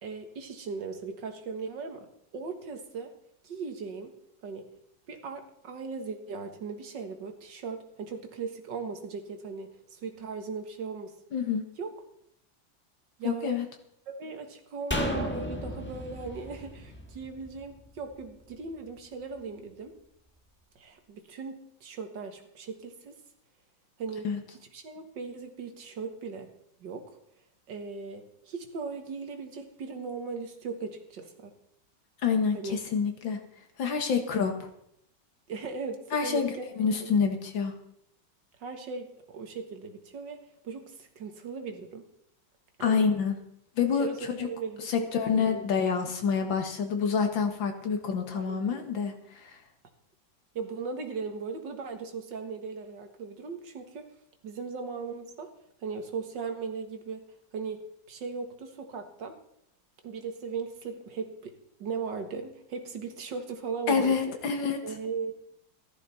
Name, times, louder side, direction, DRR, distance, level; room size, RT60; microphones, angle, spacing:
voice 1, 0.0-2.1 2.3-3.1 3.4-4.1 4.4-4.7 5.1-11.2 11.8-11.9 13.2-13.6 14.1-19.9 20.8-23.2 24.0-24.3 24.7-26.5 26.8-27.1 27.7-31.5 32.5-32.8 35.5-36.7 37.0-37.2 38.6-40.4 40.6-42.1 42.8-43.1 43.9-45.7 48.3-48.9 50.6-54.1 54.4-55.5 55.8-57.2 57.5-59.4 60.0-61.5 61.8-64.3 64.8-65.3, right 5 dB, 70° right, 6 dB, 2.1 m, -38 dB
voice 2, 11.3-11.6 13.2-13.7 24.2-24.4 32.2-33.4 33.8-34.7 36.1-36.5 36.8-37.7 42.8-43.4 43.8-44.5 44.9-49.6 63.9-64.8, left 6 dB, 80° left, 5 dB, 2.3 m, -27 dB
sound 1, 14.9-18.2 18.5-18.6, left 1 dB, 5° left, 1.4 m, -34 dB
14.5 x 13.0 x 4.2 m, 0.72 s
omnidirectional pair, 2.1 m